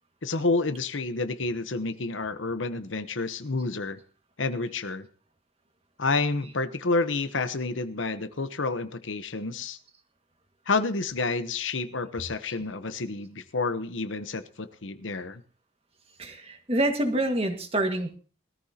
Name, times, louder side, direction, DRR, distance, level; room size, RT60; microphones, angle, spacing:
voice 1, 0.2-4.0 4.4-5.1 6.0-9.8 10.7-15.4, left 3 dB, 85° left, 12 dB, 1.0 m, -29 dB
voice 2, 16.2-18.2, right 1 dB, 30° right, 5 dB, 1.8 m, -27 dB
21.0 x 14.0 x 2.9 m, 0.37 s
head